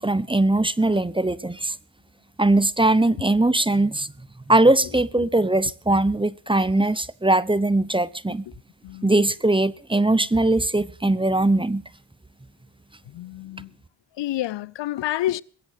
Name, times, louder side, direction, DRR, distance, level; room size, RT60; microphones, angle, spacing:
voice 1, 0.0-1.7 2.4-4.1 4.5-8.5 9.0-11.8, right 2 dB, 10° right, 0.8 m, -20 dB
voice 2, 8.5-9.3 11.3-11.4 13.1-13.7 14.2-15.4, left 14 dB, 80° left, 0.6 m, -30 dB
21.0 x 8.1 x 6.8 m
cardioid pair, 50°, 43 cm